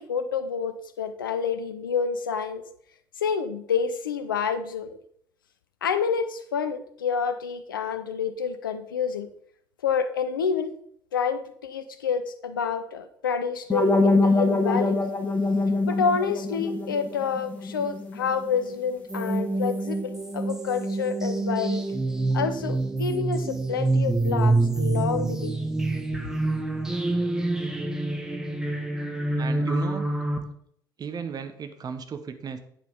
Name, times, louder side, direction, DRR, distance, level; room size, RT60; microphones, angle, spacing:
voice 1, 0.0-2.6 3.2-4.9 5.8-9.3 9.8-10.7 11.1-15.0 15.9-21.8 22.3-25.6, left 6 dB, 75° left, 10 dB, 0.7 m, -28 dB
sound 1, 13.7-18.6, left 2 dB, 15° left, 1.8 m, -24 dB
sound 2, 19.1-30.4, right 2 dB, 5° right, 1.4 m, -26 dB
voice 2, 29.4-30.1 31.0-32.6, right 6 dB, 35° right, 8 dB, 1.1 m, -35 dB
8.8 x 7.5 x 3.6 m, 0.65 s
figure-of-eight pair, 55°, 11 cm